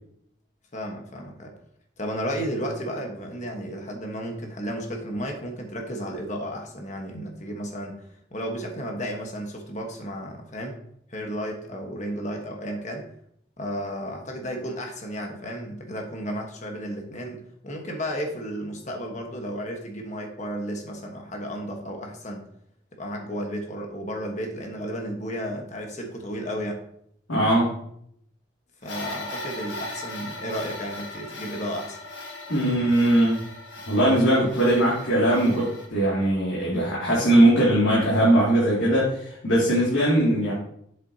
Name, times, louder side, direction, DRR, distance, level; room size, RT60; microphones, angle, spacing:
voice 1, 0.7-1.5 2.0-10.8 11.1-13.1 13.6-22.5 22.9-26.8 28.8-32.0, equal, 40° left, 2 dB, 1.2 m, -33 dB
voice 2, 27.3-27.7 32.5-33.4 33.9-40.5, right 1 dB, 85° left, -7 dB, 2.4 m, -20 dB
sound 1, 28.8-35.9, left 2 dB, 70° left, 1.2 m, -38 dB
7.9 x 7.6 x 2.8 m, 0.70 s
head